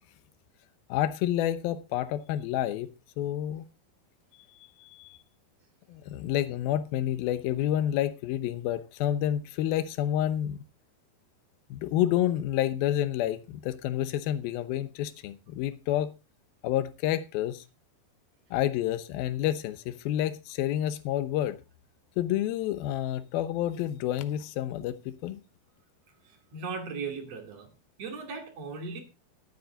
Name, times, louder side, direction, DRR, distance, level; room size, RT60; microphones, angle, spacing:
voice 1, 0.9-2.9 3.2-3.7 4.9-5.2 5.9-10.6 11.7-16.1 16.6-17.6 18.5-21.6 22.2-25.4, left 12 dB, 80° left, 2.7 m, -29 dB
voice 2, 26.2-27.7 28.0-29.0, right 4 dB, 45° right, 3.0 m, -37 dB
12.5 x 10.0 x 3.9 m
omnidirectional pair, 4.4 m